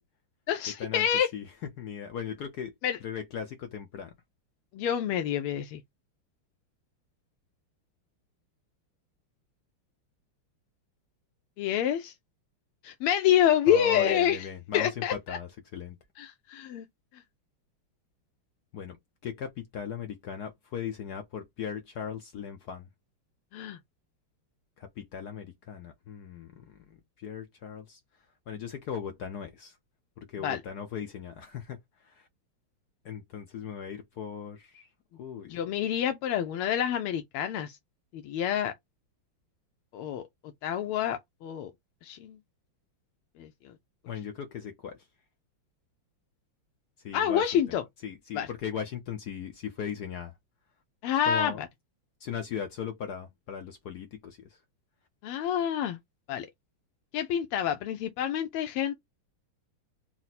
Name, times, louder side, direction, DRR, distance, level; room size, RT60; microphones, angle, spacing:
voice 1, 0.5-1.3 2.8-3.0 4.7-5.8 11.6-12.1 12.8-14.4 14.7-15.4 16.2-16.9 23.5-23.8 30.4-30.6 35.5-37.8 38.1-38.7 39.9-40.2 40.6-41.7 42.0-42.4 43.4-43.5 47.1-47.8 48.3-48.5 51.0-51.7 55.2-56.0 56.3-56.5 57.1-58.9, left 9 dB, 85° left, 1.5 m, -27 dB
voice 2, 1.8-2.7 3.0-4.1 13.7-16.0 18.7-19.0 19.2-22.9 24.8-28.0 28.5-29.8 30.2-31.8 32.0-32.3 33.0-34.9 35.2-35.6 44.1-45.0 47.0-50.3 51.2-51.6 52.2-54.5, left 7 dB, 65° left, 1.0 m, -38 dB
4.3 x 2.1 x 4.0 m
omnidirectional pair, 2.4 m